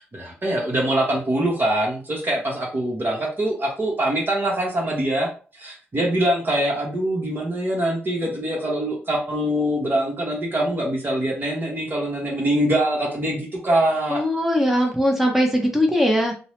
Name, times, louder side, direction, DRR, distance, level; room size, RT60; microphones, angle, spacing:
voice 1, 0.0-5.3 5.5-14.2, right 1 dB, 40° right, -3 dB, 0.9 m, -23 dB
voice 2, 14.1-16.3, equal, 5° right, 1 dB, 0.8 m, -20 dB
2.6 x 2.0 x 3.1 m, 0.38 s
hypercardioid pair, 45°, 5 cm